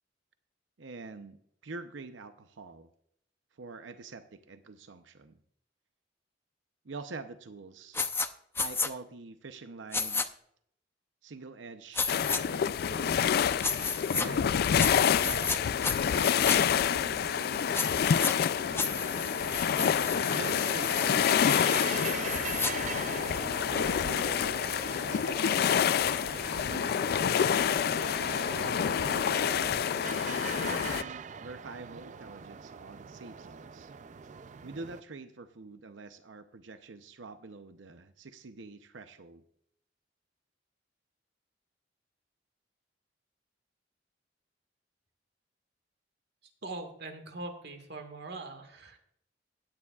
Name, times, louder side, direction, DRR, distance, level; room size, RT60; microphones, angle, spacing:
voice 1, 0.8-2.9 3.6-5.4 6.8-8.1 8.6-10.3 11.2-13.5 14.1-14.6 15.0-15.7 16.1-17.9 20.3-22.4 23.6-24.5 25.1-26.1 26.7-27.9 29.1-33.9 34.6-39.4, right 3 dB, 85° right, 9 dB, 0.7 m, -46 dB
sound 1, 7.9-8.3 8.5-8.9 9.9-10.3 11.9-12.4 13.6-14.3 14.8-15.6 15.8-16.6 17.7-18.3 18.8-22.7, left 4 dB, 15° left, 0.6 m, -33 dB
sound 2, 12.1-31.0, left 8 dB, 55° left, 0.3 m, -28 dB
sound 3, 15.2-35.0, right 6 dB, 40° right, 0.4 m, -42 dB
voice 2, 46.6-49.0, right 2 dB, 60° right, 6 dB, 1.7 m, -42 dB
16.5 x 9.8 x 2.4 m, 0.70 s
head